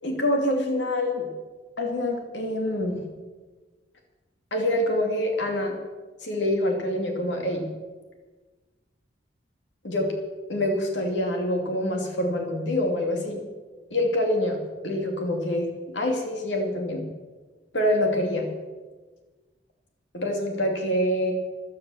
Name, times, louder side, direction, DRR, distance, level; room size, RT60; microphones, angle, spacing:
voice 1, 0.0-1.3 1.8-3.0 4.5-5.7 6.2-7.7 9.8-10.1 10.5-13.4 13.9-14.6 14.8-15.7 15.9-17.0 17.7-18.5 20.1-21.3, left 1 dB, 80° left, 2 dB, 2.5 m, -25 dB
14.0 x 12.5 x 7.1 m, 1.3 s
head